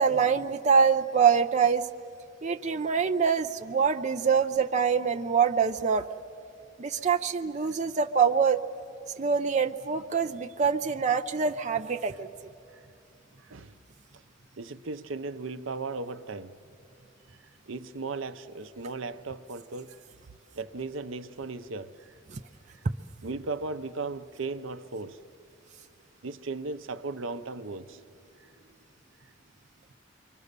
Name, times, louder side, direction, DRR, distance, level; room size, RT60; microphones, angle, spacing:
voice 1, 0.0-1.9 2.4-6.1 6.8-8.6 9.2-12.5 22.3-22.4, right 6 dB, 35° right, 0.5 m, -25 dB
voice 2, 13.4-13.7 14.6-16.6 17.7-20.0 20.6-22.1 23.2-25.2 26.2-28.0, right 3 dB, 75° right, 0.7 m, -36 dB
28.5 x 24.0 x 6.7 m
head